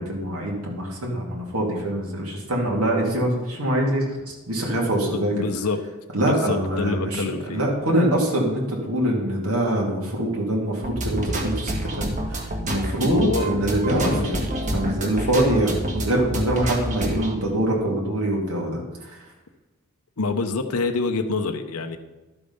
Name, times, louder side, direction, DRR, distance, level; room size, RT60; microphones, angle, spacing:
voice 1, 0.0-5.5 6.1-19.3, right 1 dB, 75° right, -2 dB, 2.6 m, -24 dB
voice 2, 5.1-5.8 6.2-7.6 13.0-13.5 14.1-14.3 20.2-22.0, left 3 dB, 85° left, 6 dB, 0.9 m, -26 dB
sound 1, 10.8-17.3, right 1 dB, 35° right, 1.6 m, -28 dB
12.0 x 7.0 x 5.5 m, 1.2 s
head